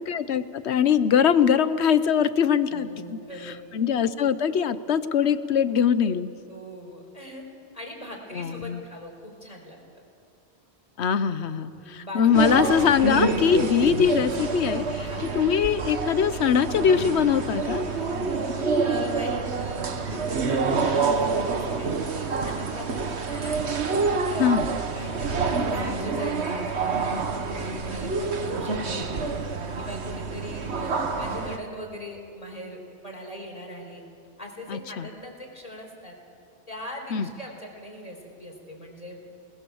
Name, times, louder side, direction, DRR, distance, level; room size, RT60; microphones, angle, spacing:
voice 1, 0.0-6.3 8.3-8.8 11.0-15.1 15.3-17.8 24.4-24.7 34.7-35.1 37.1-37.3, left 7 dB, 80° left, 13 dB, 1.1 m, -22 dB
voice 2, 2.7-3.6 6.5-7.4 7.7-9.8 11.7-12.4 15.0-15.3 18.8-23.7 24.3-29.3 29.8-34.0 34.4-36.2 36.7-39.2, equal, 35° left, 0 dB, 4.4 m, -40 dB
sound 1, 12.3-31.6, right 4 dB, 80° right, 1.6 m, -27 dB
29.0 x 20.0 x 7.2 m, 2.5 s
omnidirectional pair, 1.1 m